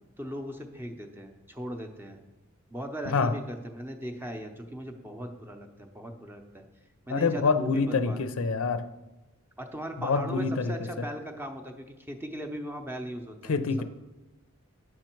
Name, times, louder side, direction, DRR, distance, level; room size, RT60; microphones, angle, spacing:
voice 1, 0.2-2.2 2.7-6.6 7.1-8.2 9.6-13.6, equal, 10° right, 5 dB, 0.7 m, -38 dB
voice 2, 7.1-8.9 10.0-10.7 13.5-13.8, left 4 dB, 70° left, 11 dB, 0.5 m, -26 dB
9.8 x 6.3 x 4.5 m, 1.0 s
head